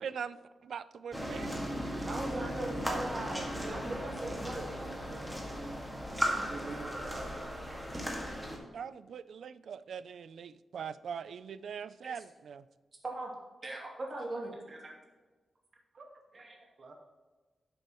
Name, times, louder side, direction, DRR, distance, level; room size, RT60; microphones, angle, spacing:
voice 1, 0.0-0.4 0.6-1.6 8.7-12.6, right 7 dB, 75° right, 15 dB, 0.4 m, -42 dB
sound 1, 1.1-8.6, equal, 5° right, 1.8 m, -36 dB
voice 2, 1.9-4.7 12.0-12.1 13.0-13.3 13.6-15.0 16.3-16.7, right 2 dB, 35° right, -2 dB, 2.6 m, -39 dB
voice 3, 6.5-7.4 15.9-16.1 16.8-16.9, right 3 dB, 50° right, 3 dB, 1.5 m, -44 dB
11.5 x 7.7 x 3.0 m, 1.3 s
wide cardioid pair, 130°, 0 cm